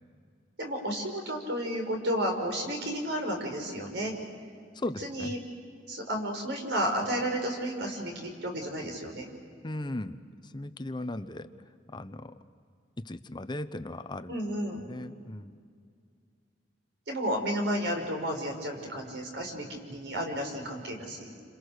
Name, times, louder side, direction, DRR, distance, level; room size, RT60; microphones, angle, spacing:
voice 1, 0.6-4.1 5.0-5.4 5.9-9.3 14.3-14.8 17.1-21.3, equal, 65° right, 3 dB, 5.7 m, -32 dB
voice 2, 4.7-5.3 9.6-10.2 10.4-11.5 11.9-12.4 13.0-14.3 14.9-15.6, left 1 dB, 25° left, 10 dB, 0.9 m, -37 dB
30.0 x 27.0 x 6.6 m, 2.2 s
head